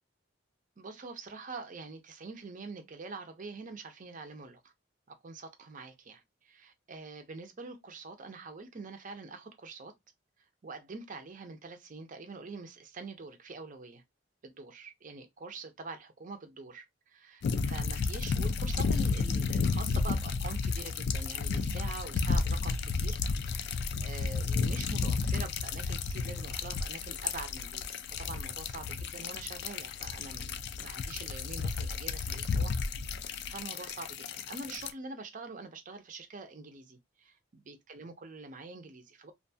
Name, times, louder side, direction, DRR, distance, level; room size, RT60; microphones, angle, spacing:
voice 1, 0.8-4.6 5.2-9.9 10.6-14.0 14.4-32.8 33.5-39.3, right 3 dB, 45° right, 0.5 m, -45 dB
sound 1, 17.4-34.9, left 4 dB, 60° left, 0.3 m, -32 dB
2.5 x 2.2 x 2.6 m
head